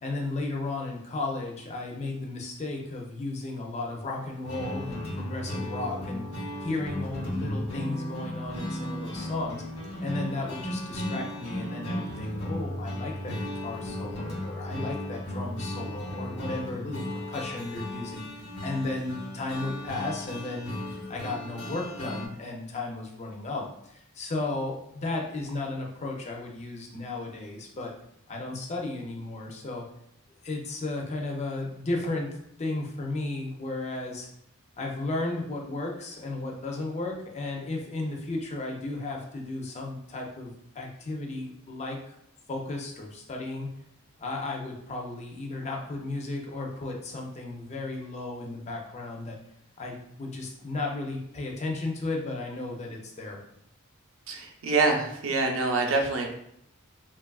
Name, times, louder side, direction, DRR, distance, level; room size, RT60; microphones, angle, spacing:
voice 1, 0.0-6.3 6.6-9.6 10.0-18.3 18.6-20.7 21.1-27.9 28.3-29.8 30.4-32.3 32.6-34.3 34.8-42.0 42.5-43.7 44.2-49.4 49.8-53.4, left 2 dB, 30° left, 0 dB, 0.5 m, -34 dB
sound 1, 4.4-22.3, left 1 dB, 80° left, 0.7 m, -35 dB
voice 2, 54.3-56.3, right 3 dB, 65° right, 2 dB, 0.5 m, -26 dB
2.9 x 2.3 x 2.3 m, 0.75 s
head